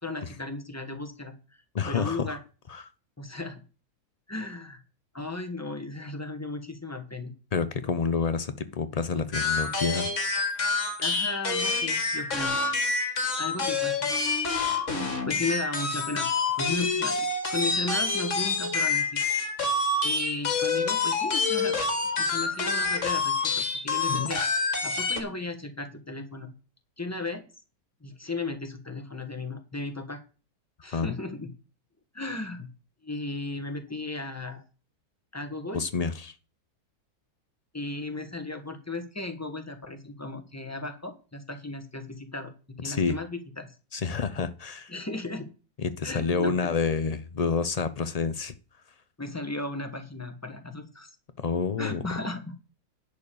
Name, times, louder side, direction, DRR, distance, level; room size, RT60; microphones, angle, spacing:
voice 1, 0.0-1.4 1.9-2.4 3.2-3.6 4.3-4.8 5.1-7.3 11.0-12.6 13.4-14.1 15.0-16.3 16.6-19.2 20.0-21.8 22.2-26.5 27.0-27.4 28.0-30.2 30.8-31.5 32.1-32.7 33.0-34.6 35.3-35.8 37.7-42.5 42.8-43.7 44.9-45.5 46.0-46.7 49.2-51.1 51.8-52.6, left 2 dB, 10° left, 1.4 m, -35 dB
voice 2, 1.7-2.4 2.7-2.9 7.5-10.5 24.1-24.3 30.9-31.2 35.7-36.4 42.8-43.2 43.9-44.9 45.8-48.5 51.4-52.0, left 5 dB, 70° left, 0.3 m, -29 dB
sound 1, 9.3-25.2, left 3 dB, 50° left, 2.1 m, -27 dB
10.5 x 5.1 x 6.9 m
omnidirectional pair, 1.6 m